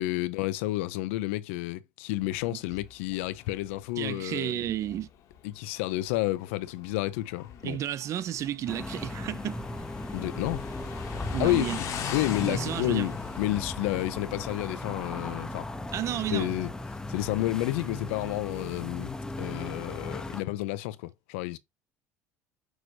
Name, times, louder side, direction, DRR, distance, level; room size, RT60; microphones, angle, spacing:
voice 1, 0.0-4.6 5.4-7.8 10.1-10.7 11.4-11.7 12.1-15.7 16.3-16.7 17.1-21.6, left 17 dB, 85° left, 0.4 m, -30 dB
Motorcycle, 2.1-15.0, left 8 dB, 60° left, 1.0 m, -42 dB
voice 2, 4.0-5.1 7.6-9.6 11.3-11.8 12.4-13.1 15.9-16.5, right 11 dB, 50° right, 0.4 m, -32 dB
sound 1, 8.7-20.4, left 2 dB, 10° left, 0.5 m, -37 dB
6.1 x 2.6 x 3.1 m
supercardioid pair, 95°, 7 cm